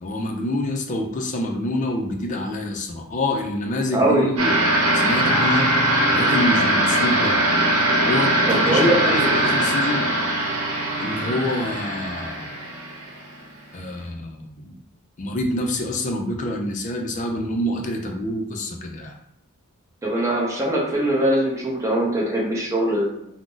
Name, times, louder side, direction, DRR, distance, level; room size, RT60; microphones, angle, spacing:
voice 1, 0.0-4.6 4.9-5.7 6.1-7.4 8.0-10.1 11.0-12.6 13.7-14.8 15.2-19.1, left 1 dB, 35° left, 2 dB, 0.4 m, -26 dB
voice 2, 3.9-4.3 8.5-9.4 20.0-23.3, right 1 dB, 15° right, -4 dB, 0.6 m, -22 dB
sound 1, 4.4-13.4, right 1 dB, 90° right, 0.8 m, -21 dB
2.5 x 2.0 x 3.7 m, 0.74 s
head